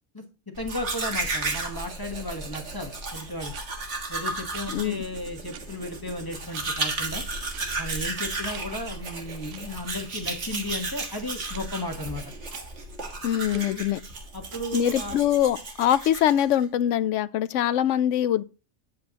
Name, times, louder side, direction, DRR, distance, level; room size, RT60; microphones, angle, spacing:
voice 1, 0.6-3.5 4.1-7.2 7.8-12.2 13.5-13.8 14.3-15.2, left 1 dB, 20° left, 1.2 m, -34 dB
Domestic sounds home sounds, 0.6-16.6, right 3 dB, 70° right, 1.8 m, -34 dB
sound 1, 1.5-1.7 2.5-2.6 3.5-3.6 4.5-4.6 5.5-5.6 6.5-6.6 7.5-7.6 8.5-8.6 9.5-9.6 10.5-10.7 11.5-11.6 12.5-12.6 13.5-13.7 14.5-14.7, right 10 dB, 85° right, 1.0 m, -44 dB
voice 2, 4.7-5.0 13.2-14.0 14.7-18.4, left 11 dB, 85° left, 0.9 m, -23 dB
9.5 x 7.7 x 2.9 m
omnidirectional pair, 1.2 m